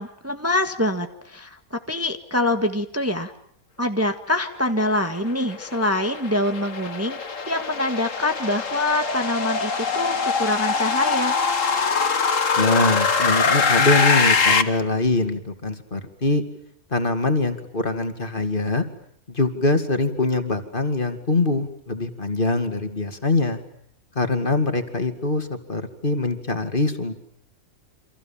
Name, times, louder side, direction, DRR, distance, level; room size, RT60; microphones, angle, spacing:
voice 1, 0.0-3.3 3.8-11.3, left 1 dB, 10° right, 7 dB, 1.6 m, -25 dB
sound 1, 5.1-14.6, left 5 dB, 60° left, 2.1 m, -23 dB
voice 2, 12.6-16.4 16.9-18.9 19.3-23.6 24.2-27.1, left 2 dB, 35° left, 8 dB, 2.7 m, -23 dB
29.0 x 26.5 x 7.4 m, 0.67 s
omnidirectional pair, 1.5 m